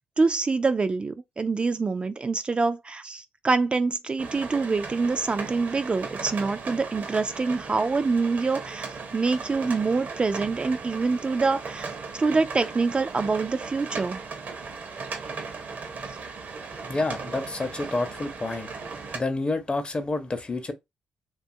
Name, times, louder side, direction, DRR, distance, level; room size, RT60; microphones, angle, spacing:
voice 1, 0.2-8.9 9.1-14.2, right 4 dB, 35° right, 0.3 m, -25 dB
sound 1, 4.2-19.2, right 4 dB, 60° right, 0.7 m, -37 dB
voice 2, 16.9-18.7 19.1-20.7, left 2 dB, 35° left, 0.7 m, -29 dB
2.8 x 2.3 x 2.6 m
supercardioid pair, 55°, 3 cm